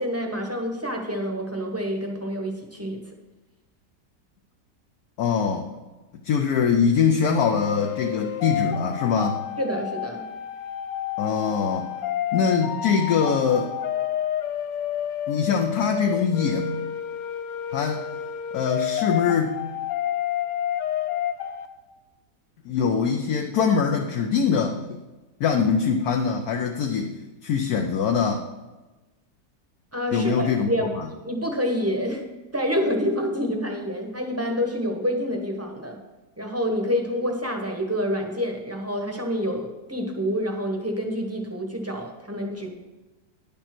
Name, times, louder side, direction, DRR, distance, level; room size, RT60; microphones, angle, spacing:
voice 1, 0.0-3.0 9.6-10.2 29.9-30.9 31.2-32.3 32.5-36.0 36.4-42.7, equal, 10° right, 2 dB, 0.9 m, -27 dB
voice 2, 5.2-5.7 6.1-9.4 11.2-11.9 12.3-13.7 15.3-16.7 17.7-18.1 18.5-19.6 22.6-25.0 25.4-27.1 27.4-28.4 30.1-31.1, left 6 dB, 65° left, 3 dB, 1.1 m, -23 dB
sound 1, 7.3-21.7, left 11 dB, 90° left, 1.4 m, -30 dB
10.0 x 5.4 x 6.0 m, 1.1 s
omnidirectional pair, 1.8 m